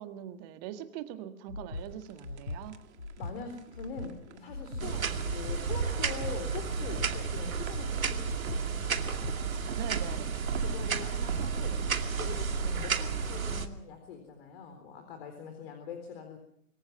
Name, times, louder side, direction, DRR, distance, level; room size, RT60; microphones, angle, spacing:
voice 1, 0.0-2.8 9.8-10.3, right 11 dB, 30° right, 9 dB, 1.7 m, -42 dB
Breathing, 1.5-1.9 2.2-2.6 3.0-3.3 3.7-4.1 4.5-4.8 5.2-5.6 6.0-6.3 6.7-7.1 7.5-7.9 8.2-8.6 9.0-9.4, left 2 dB, 90° left, 4.5 m, -39 dB
sound 1, 1.8-13.9, right 9 dB, 50° right, 1.9 m, -43 dB
voice 2, 3.2-8.9 10.6-11.8 12.1-16.4, left 5 dB, 45° left, 6 dB, 4.1 m, -43 dB
sound 2, 4.8-13.7, right 5 dB, 70° right, 2.4 m, -32 dB
26.5 x 21.0 x 5.9 m, 0.70 s
figure-of-eight pair, 125°, 43 cm